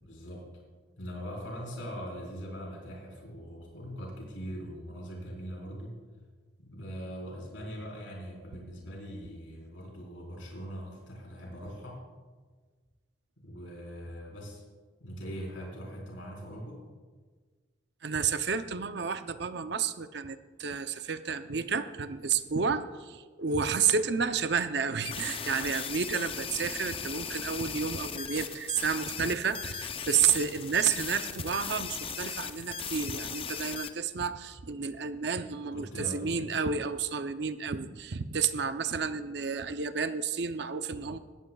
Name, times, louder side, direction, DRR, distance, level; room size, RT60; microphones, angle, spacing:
voice 1, 0.0-0.5 1.0-6.0 6.6-12.0 13.4-14.6 15.0-16.8 28.2-28.3 35.7-36.5, equal, 80° left, -3 dB, 4.2 m, -41 dB
voice 2, 18.0-41.2, right 6 dB, 60° right, 10 dB, 0.6 m, -31 dB
sound 1, 25.0-33.9, left 7 dB, 30° left, 0.5 m, -38 dB
19.5 x 15.0 x 2.3 m, 1.4 s
head